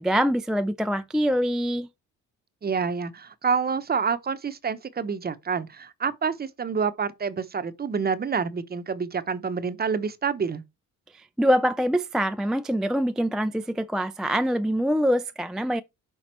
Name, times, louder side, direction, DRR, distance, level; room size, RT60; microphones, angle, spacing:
voice 1, 0.0-1.9 11.1-15.8, equal, ahead, 0.3 m, -24 dB
voice 2, 2.6-10.6, right 6 dB, 30° right, 0.8 m, -28 dB
6.1 x 3.9 x 4.4 m
cardioid pair, 90°, 30 cm